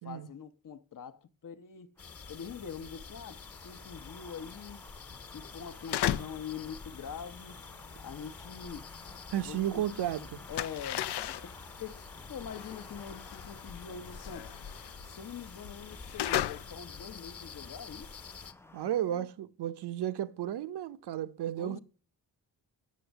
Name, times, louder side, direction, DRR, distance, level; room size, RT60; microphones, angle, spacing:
voice 1, 0.0-2.0 2.3-4.8 5.2-7.6 8.0-8.9 9.4-11.1 11.4-11.5 11.8-12.0 12.3-14.6 15.0-18.2 19.1-19.3 21.6-21.8, left 7 dB, 55° left, 0.9 m, -44 dB
sound 1, 2.0-18.5, left 5 dB, 35° left, 1.2 m, -49 dB
sound 2, 2.0-19.0, left 2 dB, 5° left, 0.5 m, -54 dB
sound 3, 5.6-6.5 6.8-9.7 10.0-17.2, left 12 dB, 85° left, 0.6 m, -36 dB
voice 2, 9.3-10.4 18.7-21.8, right 11 dB, 85° right, 0.8 m, -33 dB
8.4 x 6.3 x 8.0 m
cardioid pair, 85°, 39 cm